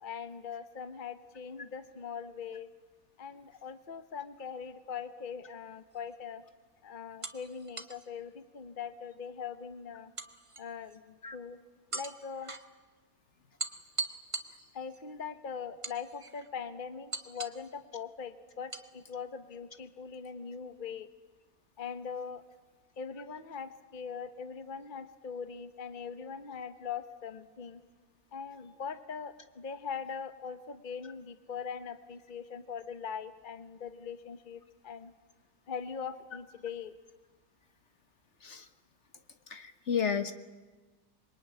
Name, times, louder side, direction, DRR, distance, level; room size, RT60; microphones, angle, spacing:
voice 1, 0.0-2.7 3.2-6.4 6.8-10.1 10.6-11.6 11.9-12.5 14.7-21.1 21.8-22.4 23.0-27.8 28.3-35.1 35.7-37.0, left 6 dB, 35° left, 11 dB, 1.3 m, -41 dB
sound 1, 5.9-6.1 7.2-8.0 10.2-11.0 11.9-12.7 13.6-15.0 15.8-16.5 17.1-17.7 18.7-18.9, right 3 dB, 20° right, 1.4 m, -40 dB
voice 2, 39.5-40.3, left 7 dB, 55° left, 10 dB, 1.5 m, -32 dB
26.5 x 23.0 x 9.7 m, 1.2 s
omnidirectional pair, 1.6 m